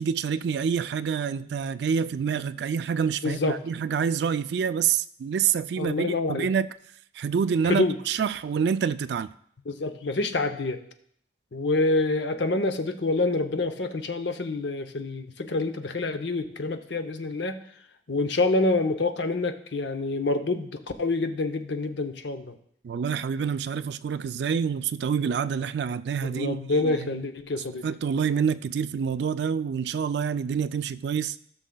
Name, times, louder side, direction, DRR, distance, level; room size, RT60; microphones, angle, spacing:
voice 1, 0.0-6.7 7.1-9.3 22.8-27.2 27.8-31.4, right 7 dB, 70° right, 0.3 m, -27 dB
voice 2, 3.2-3.6 5.8-6.5 7.7-8.0 9.7-10.8 11.5-17.6 18.1-22.5 26.2-27.8, left 2 dB, 80° left, 0.7 m, -27 dB
16.5 x 6.3 x 2.3 m
head